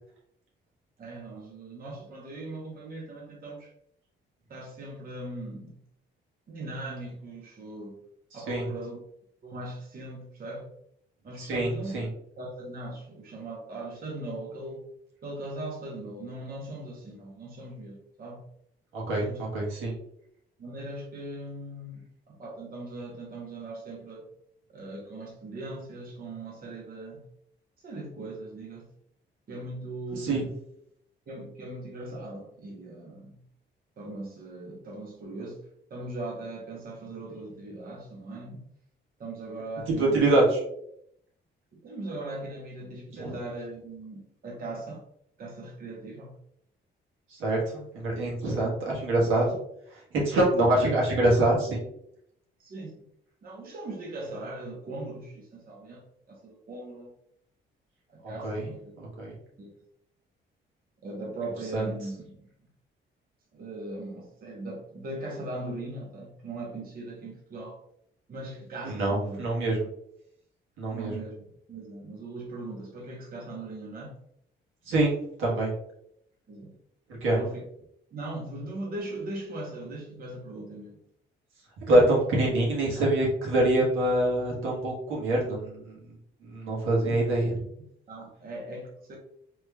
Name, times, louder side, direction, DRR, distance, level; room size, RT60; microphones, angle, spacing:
voice 1, 1.0-3.7 4.5-5.8 6.5-8.0 8.3-9.0 9.4-10.7 11.2-12.0 12.4-14.9 15.2-18.5 19.1-19.4 20.6-24.3 24.7-27.3 27.8-28.9 29.5-30.5 31.3-33.4 34.0-35.6 35.9-38.6 39.2-40.3 41.7-45.0 45.4-46.4 48.4-48.9 52.6-53.0 53.4-57.1 58.1-58.9 59.6-59.7 61.0-62.5 63.5-67.8 68.3-69.4 70.9-74.2 76.5-76.8 77.3-77.6 78.1-81.0 88.1-89.2, right 2 dB, 45° right, -2 dB, 0.9 m, -39 dB
voice 2, 11.4-12.1 18.9-19.3 19.5-19.9 30.1-30.5 40.0-40.4 43.1-43.3 47.3-49.5 50.1-51.8 58.4-58.7 59.0-59.4 61.7-61.8 68.8-69.8 70.8-71.1 74.9-75.7 77.2-77.4 81.9-85.9 86.4-87.5, right 1 dB, 85° right, -4 dB, 1.3 m, -25 dB
3.3 x 3.0 x 2.2 m, 0.72 s
cardioid pair, 90°, 20 cm